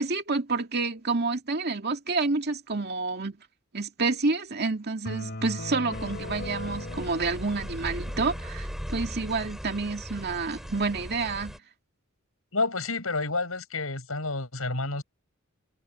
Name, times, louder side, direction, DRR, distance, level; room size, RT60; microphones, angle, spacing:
voice 1, 0.0-3.4 3.7-11.5, right 3 dB, 50° right, 2.4 m, -29 dB
sound 1, 5.1-8.6, left 1 dB, 50° left, 2.8 m, -38 dB
sound 2, 5.9-11.6, equal, ahead, 4.0 m, -38 dB
voice 2, 12.5-15.0, left 3 dB, 75° left, 7.9 m, -29 dB
head